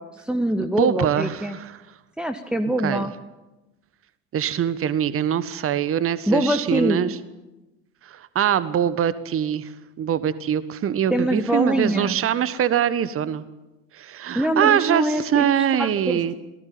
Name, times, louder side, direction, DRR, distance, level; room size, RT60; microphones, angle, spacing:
voice 1, 0.0-1.6 2.2-3.1 6.3-7.0 11.1-12.2 14.3-16.3, right 1 dB, ahead, 5 dB, 1.4 m, -24 dB
voice 2, 0.8-1.8 2.8-3.1 4.3-7.2 8.0-9.7 10.0-13.4 13.9-16.3, right 9 dB, 25° right, 15 dB, 1.4 m, -23 dB
28.0 x 18.5 x 8.6 m, 1.1 s
figure-of-eight pair, 75°, 49 cm